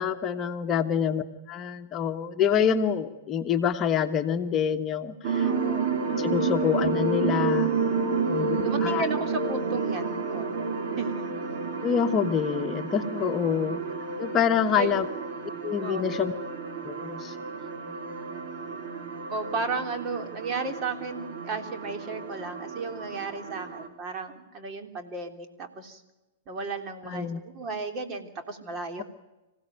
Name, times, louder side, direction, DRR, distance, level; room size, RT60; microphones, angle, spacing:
voice 1, 0.0-5.5 6.2-7.7 8.3-9.1 11.8-13.8 14.2-15.0 15.6-16.3 16.8-17.4 27.0-27.4, left 8 dB, 30° left, 5 dB, 1.3 m, -26 dB
sound 1, 5.2-23.9, right 4 dB, 55° right, 3.7 m, -30 dB
voice 2, 5.4-5.9 8.6-10.6 11.0-11.2 13.5-13.6 14.6-15.0 15.8-16.1 19.3-26.0 26.5-29.0, right 3 dB, 35° right, 5 dB, 3.3 m, -34 dB
26.0 x 16.5 x 9.3 m, 1.1 s
hypercardioid pair, 110°, 0 cm